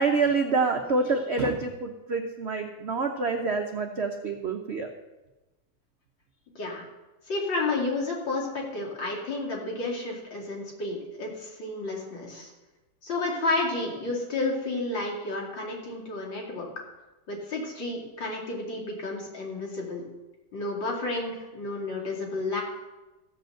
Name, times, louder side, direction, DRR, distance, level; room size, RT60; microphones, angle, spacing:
voice 1, 0.0-4.9, right 4 dB, 60° right, 4 dB, 0.6 m, -27 dB
voice 2, 7.3-12.5 13.0-16.7 17.3-20.0 20.5-22.6, left 2 dB, 65° left, -2 dB, 3.2 m, -31 dB
14.5 x 5.2 x 7.7 m, 1.1 s
omnidirectional pair, 2.2 m